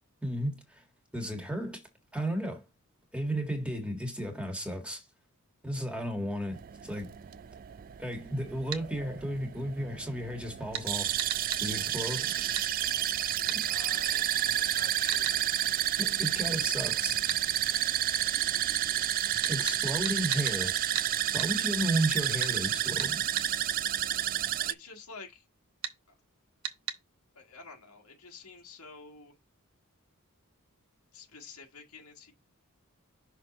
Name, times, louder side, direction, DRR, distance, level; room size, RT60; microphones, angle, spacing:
voice 1, 0.2-0.8 1.1-1.8 2.1-2.7 3.1-5.0 5.6-7.1 8.0-11.1 11.6-12.3 16.0-17.2 19.5-20.8 21.3-23.3, right 1 dB, 5° right, 1.8 m, -33 dB
sound 1, 6.5-24.7, right 12 dB, 40° right, 0.3 m, -30 dB
sound 2, 8.7-8.8 10.7-10.9 11.2-11.6 12.5-12.7 13.5-13.6 15.1-15.4 17.3-17.4 19.4-20.6 20.9-21.1 21.4-21.5 22.4-22.5 23.0-23.5 25.8-26.0 26.6-27.0, right 9 dB, 75° right, 1.0 m, -35 dB
voice 2, 13.7-15.4 17.8-18.1 24.6-25.4 27.3-29.4 31.1-32.3, left 4 dB, 80° left, 1.6 m, -49 dB
6.1 x 4.5 x 4.1 m
head